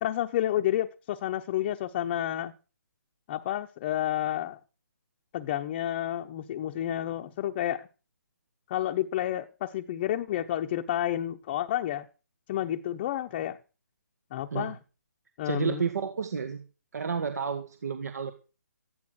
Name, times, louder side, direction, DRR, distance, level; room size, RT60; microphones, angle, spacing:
voice 1, 0.0-2.5 3.3-4.6 5.3-7.9 8.7-12.1 12.5-13.6 14.3-14.8 15.4-15.8, left 12 dB, 30° left, 0.8 m, -30 dB
voice 2, 15.4-16.6 16.9-18.3, right 6 dB, 65° right, 1.7 m, -31 dB
14.5 x 10.5 x 6.3 m
figure-of-eight pair, 145°, 10 cm